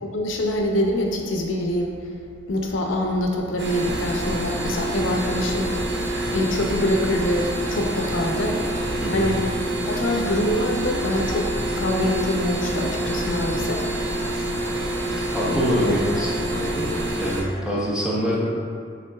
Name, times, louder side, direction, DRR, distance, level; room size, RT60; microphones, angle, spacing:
voice 1, 0.0-1.9 2.5-5.7 6.3-8.6 9.1-9.4 9.9-11.5 11.8-13.9 14.3-14.5 15.4-16.2, left 1 dB, 80° left, 0 dB, 0.6 m, -25 dB
sound 1, 3.6-17.4, right 1 dB, 60° right, 0.7 m, -27 dB
voice 2, 15.3-18.5, equal, 5° right, -7 dB, 0.8 m, -25 dB
5.8 x 3.8 x 2.3 m, 2.2 s
head